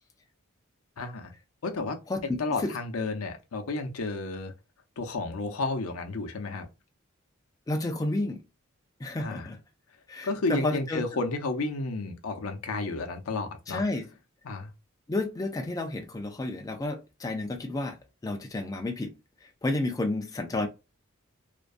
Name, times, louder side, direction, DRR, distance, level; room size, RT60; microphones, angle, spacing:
voice 1, 1.0-1.3 1.6-2.0 2.4-4.5 5.0-6.7 9.2-9.5 10.2-13.8 14.4-14.7, left 3 dB, 80° left, 0.6 m, -32 dB
voice 2, 2.1-2.7 7.7-8.4 9.0-9.6 10.1-11.0 13.7-14.1 15.1-18.0 18.2-19.1 19.6-20.7, left 2 dB, 15° left, 0.3 m, -31 dB
2.5 x 2.2 x 2.3 m
head